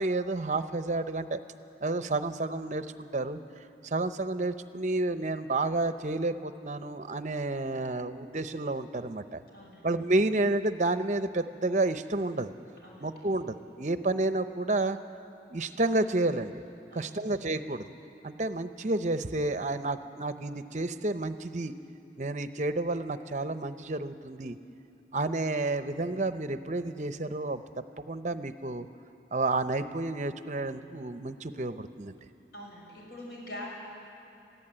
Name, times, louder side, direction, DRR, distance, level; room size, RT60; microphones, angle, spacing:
voice 1, 0.0-1.4 1.8-3.4 3.8-9.4 9.8-12.5 13.0-15.0 15.5-16.5 16.9-17.9 18.2-21.7 22.2-24.6 25.1-28.9 29.3-32.1, right 2 dB, 40° right, 11 dB, 0.7 m, -30 dB
voice 2, 9.5-9.9 12.8-13.2 16.9-17.2 32.5-33.7, left 1 dB, 65° left, -2 dB, 6.6 m, -44 dB
22.0 x 15.0 x 8.9 m, 2.8 s
head